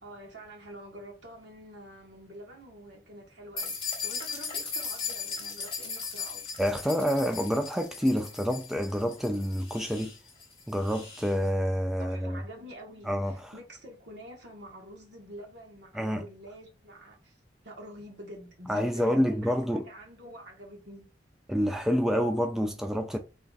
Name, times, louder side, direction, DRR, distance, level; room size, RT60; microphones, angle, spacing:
voice 1, 0.0-6.6 12.0-17.4 17.6-21.1, right 1 dB, 75° right, 1.5 m, -47 dB
sound 1, 3.6-11.3, left 5 dB, 30° left, 1.2 m, -38 dB
voice 2, 6.6-10.1 10.7-12.4 13.1-13.5 15.9-16.2 18.7-19.8 21.5-23.2, equal, ahead, 0.3 m, -28 dB
3.4 x 2.3 x 3.9 m
head